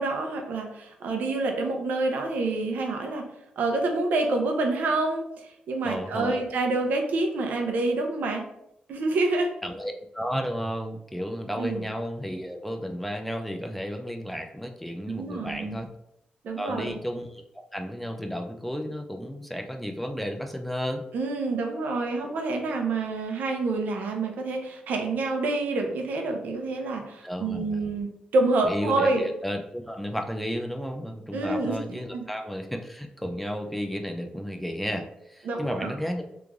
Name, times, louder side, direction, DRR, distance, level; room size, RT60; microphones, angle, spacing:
voice 1, 0.0-3.3 3.6-5.2 5.7-8.4 8.9-9.5 11.6-11.8 15.1-15.8 16.4-16.9 21.1-29.3 31.3-31.8 32.1-32.3 35.4-35.9, right 2 dB, 85° right, 3 dB, 0.6 m, -27 dB
voice 2, 5.8-6.4 9.6-15.9 16.6-21.0 27.2-27.9 28.6-36.3, equal, 5° left, 4 dB, 0.3 m, -33 dB
3.1 x 2.5 x 3.4 m, 0.79 s
wide cardioid pair, 130°, 3 cm